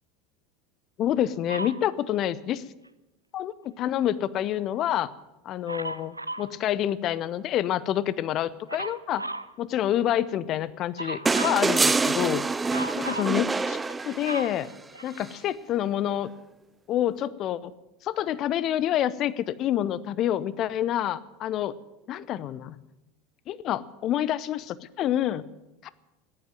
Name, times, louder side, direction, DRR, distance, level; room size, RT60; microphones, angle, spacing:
voice 1, 1.0-2.6 3.3-5.1 5.4-9.2 9.6-12.5 13.0-13.8 14.0-14.7 15.0-16.3 16.9-17.7 18.0-21.7 22.1-22.8 23.5-25.4 25.8-25.9, left 11 dB, 40° left, 18 dB, 0.7 m, -27 dB
Dog, 1.5-1.8 5.7-6.5 8.7-9.5 11.0-11.7 12.7-13.4 13.9-15.4 16.1-16.2, right 2 dB, 85° right, 0.5 m, -35 dB
sound 1, 11.3-14.6 16.1-16.2, right 4 dB, 15° right, 0.5 m, -25 dB
14.0 x 11.0 x 9.0 m, 0.99 s
figure-of-eight pair, 75°, 0 cm